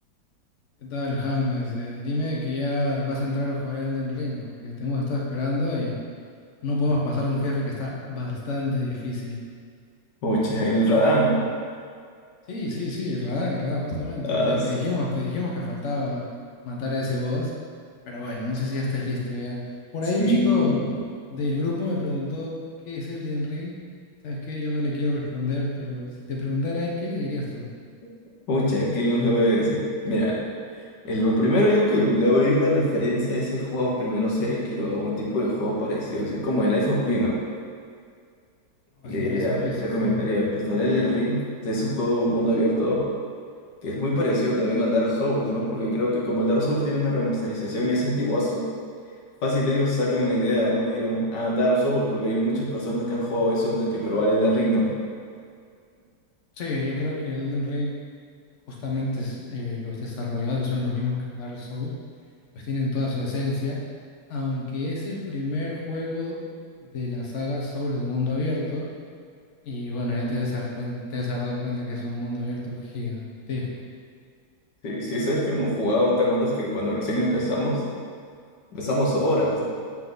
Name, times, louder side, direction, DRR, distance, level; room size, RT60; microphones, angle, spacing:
voice 1, 0.8-6.0 6.6-9.4 12.5-16.3 16.6-17.5 18.0-19.6 19.9-20.8 21.3-22.5 22.8-23.7 24.2-27.7 39.0-40.2 56.6-57.9 58.7-61.9 62.5-63.8 64.3-66.4 66.8-68.9 69.6-73.7, left 2 dB, 45° left, -3 dB, 1.2 m, -28 dB
voice 2, 10.2-11.4 14.2-14.7 20.2-21.0 28.5-30.4 30.7-37.4 39.0-43.0 43.8-48.6 49.4-54.9 74.8-77.8 78.7-79.7, equal, 80° left, -4 dB, 1.9 m, -23 dB
7.4 x 4.6 x 3.9 m, 2.2 s
omnidirectional pair, 1.9 m